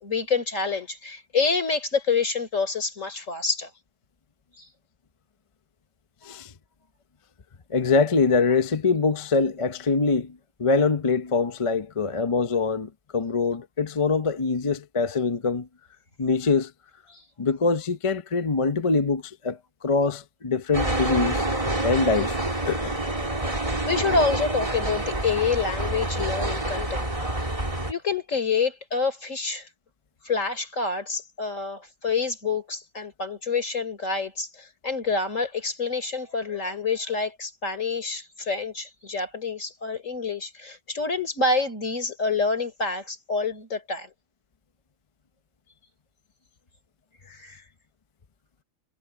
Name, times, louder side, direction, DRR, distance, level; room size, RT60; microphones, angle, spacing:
voice 1, 0.0-3.7 4.6-4.7 17.1-17.2 23.8-27.1 27.9-29.7 30.2-44.1 47.3-47.6, left 4 dB, 60° left, 4.2 m, -27 dB
voice 2, 7.7-15.7 16.2-16.7 17.4-21.5 21.8-22.4 22.7-23.0, left 4 dB, 30° left, 0.6 m, -24 dB
sound 1, 20.7-27.9, right 1 dB, 25° right, 3.3 m, -27 dB
omnidirectional pair, 1.5 m